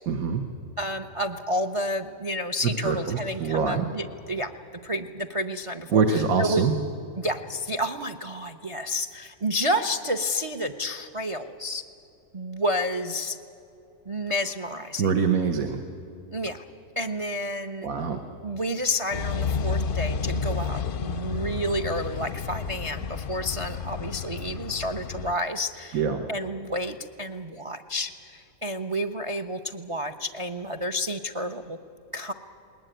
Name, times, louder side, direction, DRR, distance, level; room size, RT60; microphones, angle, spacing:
voice 1, 0.1-0.4 2.6-3.9 5.9-6.7 15.0-15.8 17.8-18.2 25.9-26.3, right 5 dB, 65° right, 6 dB, 1.5 m, -24 dB
voice 2, 0.8-4.5 4.8-6.7 7.2-11.8 12.3-13.4 14.1-15.1 16.3-16.6 17.0-17.9 18.4-26.0 26.3-31.8 32.1-32.3, equal, 40° right, 9 dB, 0.5 m, -30 dB
sound 1, 19.1-25.3, left 5 dB, 55° left, 0.6 m, -31 dB
20.5 x 19.5 x 9.1 m, 2.6 s
omnidirectional pair, 1.6 m